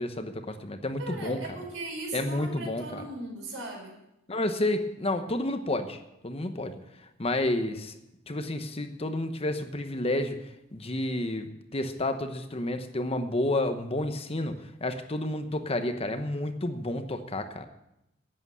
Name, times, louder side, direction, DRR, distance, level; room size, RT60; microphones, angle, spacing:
voice 1, 0.0-1.6 2.1-3.0 4.3-6.0 6.2-6.7 7.2-7.9 8.3-10.4 10.7-17.7, left 1 dB, 30° left, 7 dB, 0.9 m, -30 dB
voice 2, 1.0-4.0, right 2 dB, 75° right, 1 dB, 4.7 m, -38 dB
11.0 x 8.8 x 7.5 m, 0.85 s
head